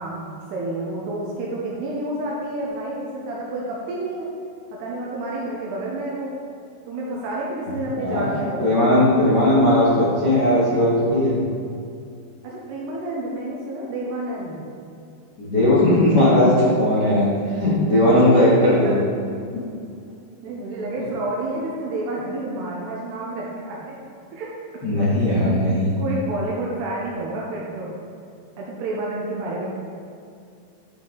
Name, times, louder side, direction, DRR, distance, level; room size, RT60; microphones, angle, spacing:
voice 1, 0.0-4.3 4.7-6.3 6.9-8.7 12.4-14.7 18.5-19.0 20.4-24.0 24.3-24.5 26.0-28.0 28.6-29.7, right 2 dB, 75° right, -4 dB, 2.6 m, -29 dB
voice 2, 7.9-8.3 8.6-11.4 15.4-17.3 17.6-19.0 19.5-19.6 24.8-26.0, left 1 dB, 85° left, -12 dB, 0.9 m, -18 dB
11.0 x 5.7 x 3.9 m, 2.5 s
omnidirectional pair, 5.7 m